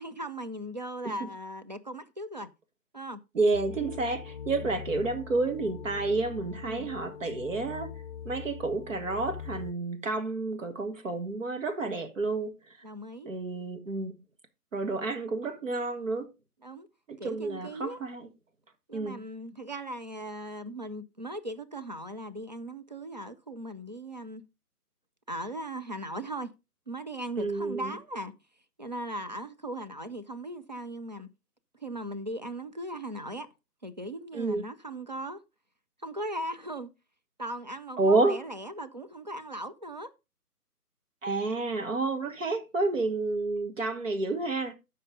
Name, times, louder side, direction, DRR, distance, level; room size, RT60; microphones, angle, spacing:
voice 1, 0.0-2.5 2.9-3.2 4.6-4.8 6.6-6.9 12.8-13.3 16.6-16.9 17.2-18.0 18.9-24.4 25.3-26.5 26.9-28.3 28.8-31.3 31.8-33.5 33.8-35.4 36.0-36.9 37.4-40.1, right 1 dB, 30° right, 0.5 m, -38 dB
voice 2, 3.3-7.9 8.2-12.5 13.2-14.2 14.7-16.3 17.1-18.3 18.9-19.2 27.4-27.9 34.3-34.6 38.0-38.4 41.2-44.7, right 3 dB, 55° right, 1.8 m, -30 dB
sound 1, 3.5-9.7, left 8 dB, 30° left, 0.7 m, -42 dB
13.0 x 5.5 x 3.8 m
figure-of-eight pair, 145°, 47 cm